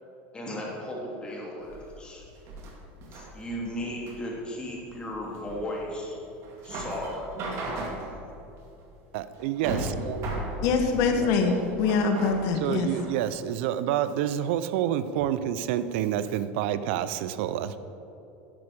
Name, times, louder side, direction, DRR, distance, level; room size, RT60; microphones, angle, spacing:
voice 1, 0.3-2.2 3.1-6.2 6.6-7.3, left 1 dB, 15° left, -3 dB, 2.8 m, -35 dB
sound 1, 1.6-13.2, right 1 dB, 45° right, 2.4 m, -37 dB
voice 2, 9.1-10.3 11.2-11.3 12.6-17.8, right 11 dB, 70° right, 13 dB, 0.5 m, -28 dB
voice 3, 10.6-12.9, left 5 dB, 55° left, 4 dB, 1.4 m, -24 dB
11.0 x 6.1 x 8.5 m, 2.8 s
supercardioid pair, 140°, 6 cm